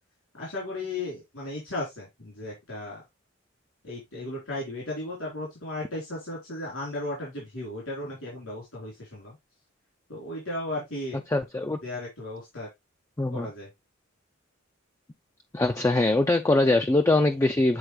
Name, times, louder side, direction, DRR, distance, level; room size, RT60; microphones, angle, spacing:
voice 1, 0.4-3.0 3.8-9.3 10.1-11.2 11.8-12.7 13.3-13.7, left 1 dB, 80° left, 3.6 m, -35 dB
voice 2, 11.3-11.8 13.2-13.5 15.5-17.8, left 2 dB, 15° left, 0.4 m, -22 dB
8.0 x 3.9 x 3.1 m
head